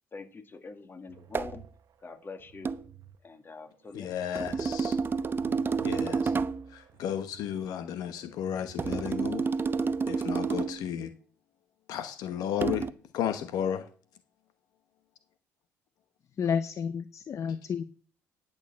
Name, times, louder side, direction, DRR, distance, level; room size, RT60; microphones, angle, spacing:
voice 1, 0.1-1.6 2.0-2.7 3.2-4.4, left 4 dB, 35° left, 1.9 m, -45 dB
sound 1, 1.1-3.2 3.6-4.7 5.1-7.7 8.0-9.5, right 12 dB, 60° right, 0.9 m, -51 dB
sound 2, 1.3-1.6 2.7-2.9 4.4-6.7 8.8-10.9 12.6-12.9, right 5 dB, 35° right, 0.7 m, -29 dB
voice 2, 3.9-5.0 5.8-6.3 6.7-9.5 9.8-11.1 11.9-12.9 13.1-13.8, left 9 dB, 75° left, 1.0 m, -33 dB
voice 3, 16.4-17.8, left 7 dB, 50° left, 0.6 m, -30 dB
10.5 x 6.6 x 7.1 m
supercardioid pair, 70°, 7 cm